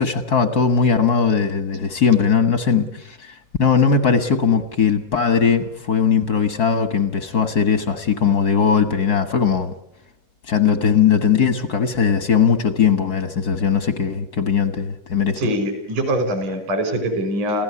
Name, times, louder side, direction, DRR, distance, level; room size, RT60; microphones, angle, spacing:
voice 1, 0.0-9.7 10.5-15.4, left 6 dB, 55° left, 9 dB, 1.0 m, -19 dB
voice 2, 15.4-17.6, equal, 75° right, 8 dB, 6.7 m, -23 dB
28.0 x 16.0 x 8.5 m, 0.90 s
omnidirectional pair, 3.7 m